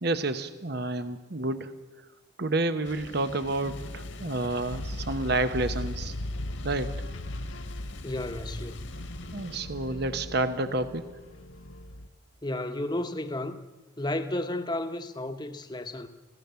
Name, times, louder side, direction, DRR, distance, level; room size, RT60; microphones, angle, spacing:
voice 1, 0.0-1.7 2.4-6.1 6.6-7.0 9.3-11.1, right 2 dB, 50° right, 0.9 m, -29 dB
sound 1, 2.8-9.6, left 3 dB, 65° left, 1.8 m, -46 dB
sound 2, 3.6-12.1, left 1 dB, 85° left, 1.1 m, -38 dB
voice 2, 8.0-9.0 12.4-13.7 14.0-16.1, left 1 dB, 20° left, 1.1 m, -33 dB
25.5 x 16.5 x 6.9 m
head